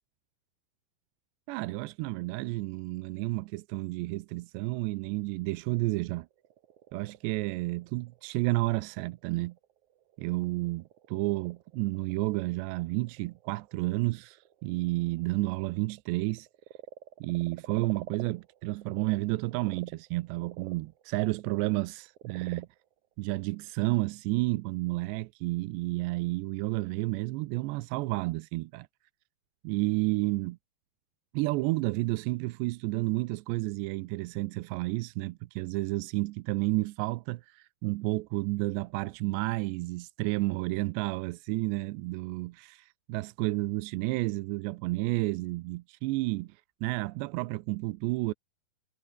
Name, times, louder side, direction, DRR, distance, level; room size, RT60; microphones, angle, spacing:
voice 1, 1.5-6.3 6.9-9.6 10.2-16.5 17.2-22.7 23.2-28.9 29.6-30.6 31.3-48.3, right 21 dB, 90° right, 2.9 m, -31 dB
Frog, 6.2-19.1 19.5-24.1, right 12 dB, 65° right, 2.1 m, -50 dB
omnidirectional pair, 5.0 m